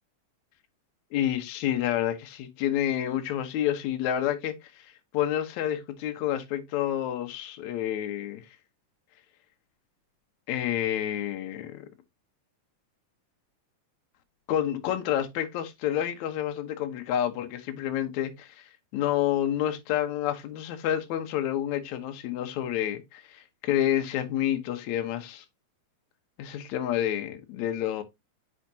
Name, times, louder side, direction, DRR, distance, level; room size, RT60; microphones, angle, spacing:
voice 1, 1.1-4.8 5.1-8.5 10.5-11.9 14.5-18.6 18.9-25.4 26.4-28.0, left 11 dB, 65° left, 2.1 m, -29 dB
9.2 x 5.1 x 2.7 m
omnidirectional pair, 4.0 m